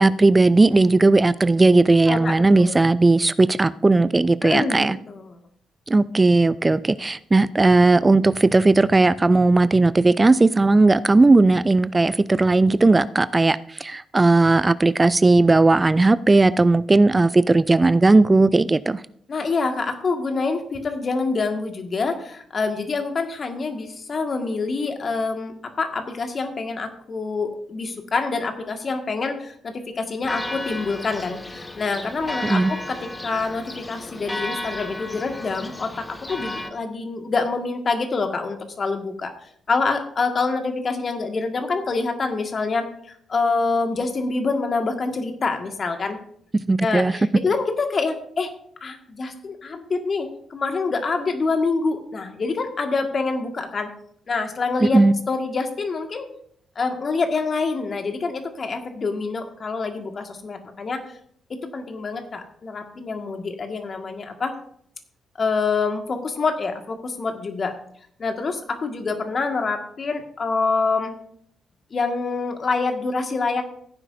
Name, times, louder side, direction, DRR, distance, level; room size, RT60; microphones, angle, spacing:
voice 1, 0.0-5.0 5.9-19.0 32.4-32.7 46.7-47.1 54.8-55.2, right 3 dB, 25° right, 17 dB, 0.4 m, -17 dB
voice 2, 2.1-2.8 4.4-5.4 19.3-46.2 46.8-48.5 48.8-53.9 54.3-56.3 56.8-61.2 61.5-64.5 65.4-67.7 68.2-71.2 71.9-73.6, left 4 dB, 45° left, 5 dB, 1.8 m, -26 dB
Church bell, 30.2-36.7, left 2 dB, 20° left, 1.5 m, -33 dB
16.0 x 9.7 x 2.7 m, 0.65 s
hypercardioid pair, 40°, 0 cm